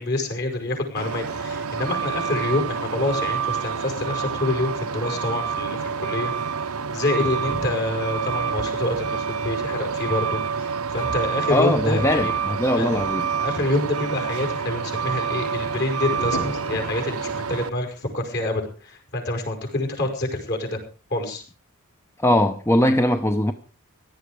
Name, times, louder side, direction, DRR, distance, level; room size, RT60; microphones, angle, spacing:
voice 1, 0.0-12.4 12.8-12.9 13.4-20.8 21.1-21.4, left 2 dB, 50° left, 5.5 m, -27 dB
Truck, 1.0-17.7, right 6 dB, 85° right, 0.9 m, -28 dB
sound 1, 5.3-5.4 6.3-6.4 7.2-8.1 8.7-9.2 9.6-9.7 10.6-10.7 10.9-11.0 11.9-12.0 12.3-12.4 12.6-12.7 12.9-13.4 13.9-14.0 16.1-17.4 17.8-18.0 18.5-18.6, left 1 dB, 85° left, 5.8 m, -35 dB
voice 2, 11.5-13.3 22.2-23.5, left 1 dB, 10° left, 0.8 m, -20 dB
17.0 x 12.0 x 4.9 m
head